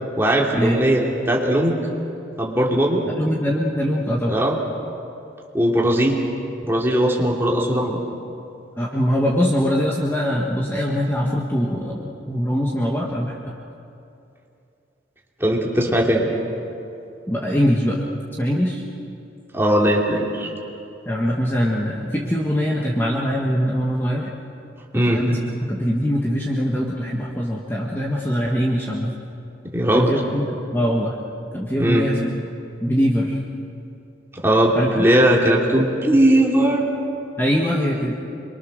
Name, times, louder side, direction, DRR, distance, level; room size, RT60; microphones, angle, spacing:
voice 1, 0.2-1.8 2.4-3.0 4.3-4.6 5.5-6.2 6.6-8.0 15.4-16.2 19.5-20.5 24.9-25.2 29.6-30.1 31.8-32.0 34.3-36.8, right 1 dB, 15° right, -3 dB, 2.9 m, -19 dB
voice 2, 3.2-4.3 8.8-13.3 17.3-18.0 18.4-18.8 21.0-24.3 24.9-29.1 29.9-31.1 31.5-32.2 32.8-33.4 34.7-34.9 37.4-38.1, equal, 10° left, -3 dB, 1.5 m, -22 dB
26.5 x 23.0 x 6.5 m, 2.7 s
head